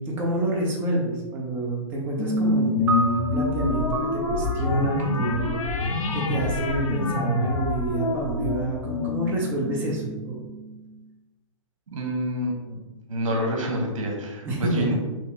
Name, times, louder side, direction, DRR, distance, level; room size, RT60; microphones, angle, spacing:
voice 1, 0.1-10.4 14.4-15.0, right 2 dB, 15° right, -2 dB, 0.6 m, -28 dB
sound 1, 2.2-10.9, left 3 dB, 90° left, 0.6 m, -27 dB
sound 2, 2.9-9.3, right 3 dB, 90° right, 0.6 m, -35 dB
voice 2, 11.9-12.8 13.1-15.0, equal, 70° right, 1 dB, 1.1 m, -27 dB
3.0 x 2.7 x 3.4 m, 1.1 s
hypercardioid pair, 155°, 17 cm